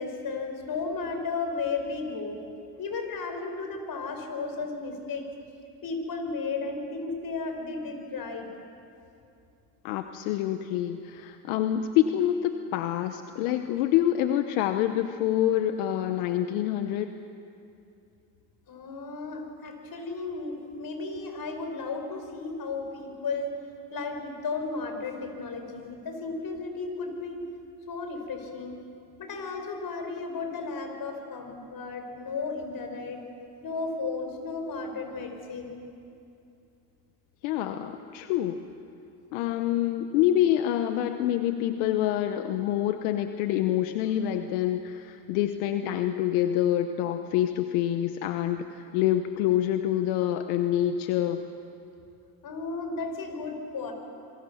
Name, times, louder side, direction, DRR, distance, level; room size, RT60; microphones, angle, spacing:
voice 1, 0.0-2.4 2.8-5.2 5.8-8.5 18.7-23.5 23.9-27.4 27.9-28.8 29.2-33.2 33.6-35.8 52.4-53.9, left 4 dB, 55° left, 4 dB, 5.6 m, -34 dB
voice 2, 9.8-17.1 37.4-38.6 39.3-51.4, left 11 dB, 90° left, 8 dB, 1.0 m, -26 dB
27.5 x 23.5 x 7.1 m, 2.6 s
supercardioid pair, 65°, 42 cm